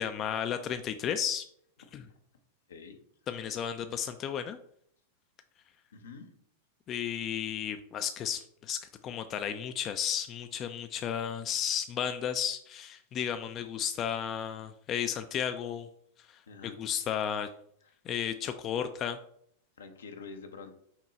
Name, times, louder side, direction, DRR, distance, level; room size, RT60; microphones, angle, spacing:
voice 1, 0.0-1.4 1.9-2.1 3.3-4.6 6.9-15.9 16.3-17.5 18.1-19.2, left 9 dB, 35° left, 8 dB, 0.3 m, -33 dB
voice 2, 5.9-6.3 16.5-16.9 19.8-20.7, left 4 dB, 75° left, 6 dB, 0.7 m, -46 dB
5.7 x 2.2 x 3.9 m, 0.67 s
hypercardioid pair, 100°, 0 cm